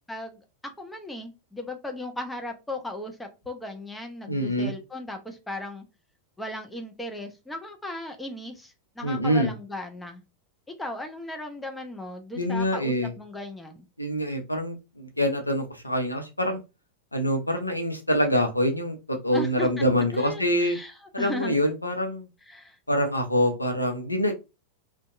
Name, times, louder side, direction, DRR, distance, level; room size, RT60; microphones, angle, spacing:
voice 1, 0.1-0.4 0.8-5.8 6.4-10.2 10.8-13.9 19.3-19.8 20.1-21.6 22.5-22.8, left 1 dB, 5° left, 0.5 m, -36 dB
voice 2, 4.3-4.7 9.0-9.5 12.3-13.1 14.0-16.6 17.1-20.8 21.1-22.3 22.9-24.3, equal, 85° left, 0.5 m, -25 dB
2.6 x 2.2 x 2.5 m
figure-of-eight pair, 90°, 0 cm